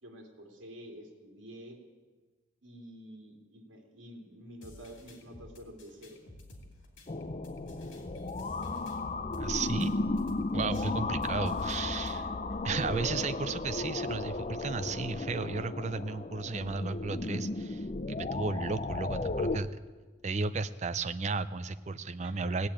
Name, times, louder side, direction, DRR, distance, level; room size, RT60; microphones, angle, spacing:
voice 1, 0.0-1.8 2.6-6.2 10.7-11.0 11.9-12.6 22.2-22.6, equal, 75° right, 2 dB, 2.6 m, -49 dB
sound 1, 4.6-12.2, left 1 dB, 70° left, 2.8 m, -53 dB
sound 2, 7.1-19.6, left 2 dB, 35° left, 0.5 m, -34 dB
voice 2, 9.4-9.9 10.5-12.2 12.6-19.7 20.2-22.7, right 4 dB, 35° right, 12 dB, 0.5 m, -34 dB
17.0 x 8.7 x 8.7 m, 1.4 s
head